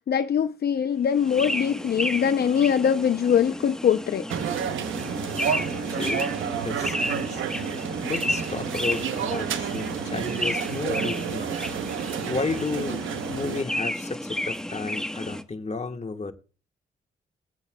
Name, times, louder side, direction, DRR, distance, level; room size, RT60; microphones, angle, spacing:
voice 1, 0.0-4.3 11.3-11.4, left 8 dB, 55° left, 0.6 m, -23 dB
sound 1, 1.1-15.4, left 1 dB, 5° left, 1.1 m, -32 dB
sound 2, 4.3-13.6, right 8 dB, 75° right, 0.9 m, -30 dB
voice 2, 5.6-6.3 6.6-7.4 8.0-11.4 12.2-13.0 13.3-16.3, left 4 dB, 35° left, 1.5 m, -32 dB
20.5 x 8.0 x 2.2 m
supercardioid pair, 50°, 20 cm